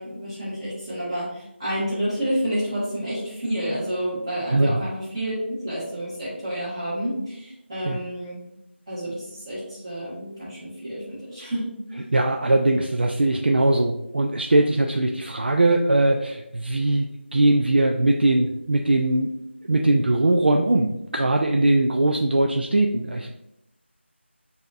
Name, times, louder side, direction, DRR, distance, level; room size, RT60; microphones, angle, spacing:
voice 1, 0.0-8.4 8.9-11.6 11.9-12.0, equal, 25° right, -10 dB, 1.7 m, -29 dB
voice 2, 12.1-19.3 19.7-23.4, right 2 dB, 55° right, 2 dB, 0.4 m, -21 dB
6.8 x 2.7 x 2.5 m, 0.82 s
figure-of-eight pair, 170°, 7 cm